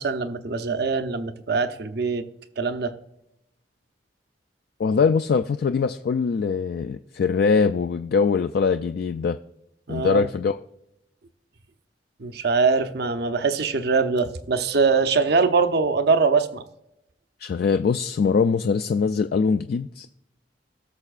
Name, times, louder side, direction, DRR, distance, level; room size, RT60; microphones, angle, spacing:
voice 1, 0.0-2.2 2.6-2.9 9.9-10.3 12.2-16.6, right 4 dB, 65° right, 9 dB, 0.7 m, -22 dB
voice 2, 4.8-9.4 9.9-10.6 17.4-20.1, left 5 dB, 60° left, 9 dB, 0.3 m, -22 dB
17.5 x 6.7 x 2.4 m, 0.84 s
head